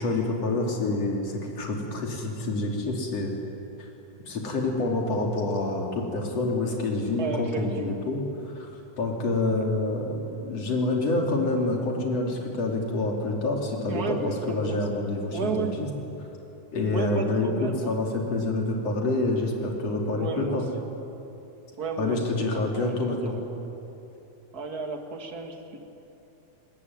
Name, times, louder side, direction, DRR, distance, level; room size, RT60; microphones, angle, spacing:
voice 1, 0.0-3.3 3.8-3.9 4.3-8.7 9.0-15.9 16.7-20.6 22.0-23.4, left 2 dB, 45° left, 1 dB, 4.1 m, -27 dB
voice 2, 7.2-8.0 13.9-15.0 15.3-15.7 16.9-18.0 20.1-20.6 21.8-23.4 24.5-25.8, right 4 dB, 35° right, 4 dB, 2.0 m, -33 dB
25.0 x 20.5 x 9.8 m, 2.9 s
omnidirectional pair, 4.0 m